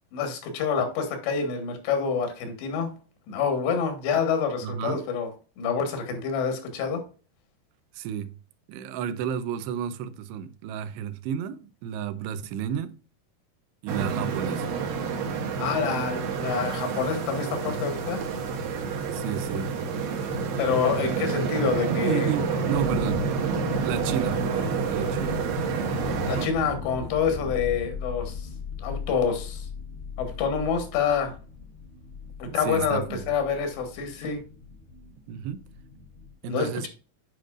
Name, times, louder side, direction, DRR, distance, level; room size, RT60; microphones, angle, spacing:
voice 1, 0.1-2.9 3.3-5.3 5.6-7.0 15.6-18.2 20.6-22.3 26.3-28.5 28.8-29.7 30.2-31.4 32.4-34.4 36.4-36.9, left 6 dB, 85° left, 3.6 m, -27 dB
voice 2, 4.6-5.1 7.9-8.3 8.7-13.0 13.8-14.7 19.1-19.8 21.9-23.3 23.8-25.4 32.4-33.2 35.3-35.6 36.4-36.9, right 8 dB, 85° right, 2.7 m, -32 dB
sound 1, 13.9-26.5, right 5 dB, 70° right, 2.8 m, -29 dB
sound 2, 22.7-36.3, left 3 dB, 55° left, 0.7 m, -37 dB
9.3 x 5.1 x 2.4 m
omnidirectional pair, 4.8 m